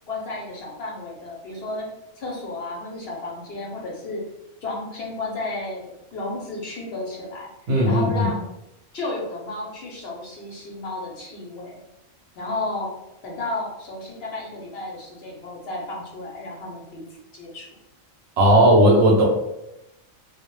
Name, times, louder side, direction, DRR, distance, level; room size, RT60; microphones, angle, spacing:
voice 1, 0.1-1.8 2.2-4.2 4.6-7.5 7.8-8.4 8.9-11.8 12.4-12.9 13.2-17.0 17.3-17.7, left 2 dB, 60° left, -3 dB, 0.7 m, -32 dB
voice 2, 7.7-8.3 18.4-19.2, right 1 dB, 65° right, -1 dB, 0.7 m, -16 dB
2.1 x 2.0 x 2.9 m, 0.88 s
omnidirectional pair, 1.3 m